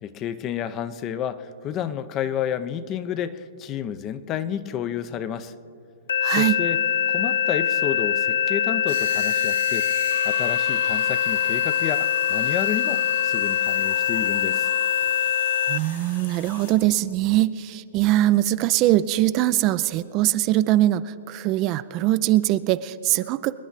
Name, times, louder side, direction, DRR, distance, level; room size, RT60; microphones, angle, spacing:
voice 1, 0.0-5.5 6.4-6.8 7.1-9.9 10.2-14.7, left 9 dB, 30° left, 13 dB, 0.7 m, -30 dB
sound 1, 6.1-15.8, left 9 dB, 80° left, 0.3 m, -23 dB
voice 2, 6.2-6.6 15.7-23.6, right 15 dB, 35° right, 14 dB, 0.4 m, -22 dB
sound 2, 8.9-16.7, left 5 dB, 65° left, 4.1 m, -40 dB
25.5 x 10.0 x 4.1 m, 2.6 s
hypercardioid pair, 120°, 0 cm